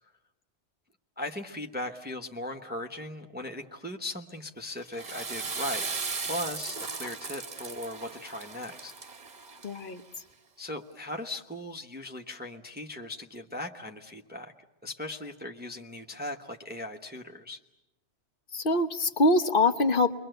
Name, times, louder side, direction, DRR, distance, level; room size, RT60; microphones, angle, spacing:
voice 1, 1.2-5.9 6.3-8.9 10.6-14.5 14.8-17.6, left 1 dB, 10° right, 4 dB, 1.0 m, -38 dB
Water / Toilet flush, 4.8-10.0, right 4 dB, 40° right, 1.1 m, -37 dB
voice 2, 9.6-10.0 18.5-20.2, left 2 dB, 50° left, 9 dB, 1.3 m, -24 dB
30.0 x 22.5 x 7.9 m, 0.97 s
omnidirectional pair, 1.2 m